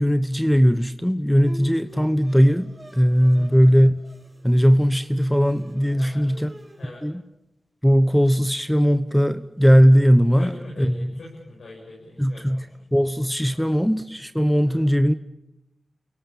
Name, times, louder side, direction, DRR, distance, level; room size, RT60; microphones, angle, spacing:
voice 1, 0.0-3.9 4.4-6.5 7.0-7.2 7.8-10.5 10.8-11.1 12.2-12.7 12.9-15.1, equal, 5° left, 11 dB, 1.1 m, -18 dB
Bowed string instrument, 1.4-6.9, equal, 30° right, 4.6 m, -46 dB
voice 2, 6.0-6.3 6.8-7.0 10.4-12.6 13.5-13.7 14.6-14.8, left 1 dB, 85° left, -4 dB, 7.8 m, -41 dB
29.0 x 18.0 x 8.8 m, 0.90 s
cardioid pair, 45°, 0 cm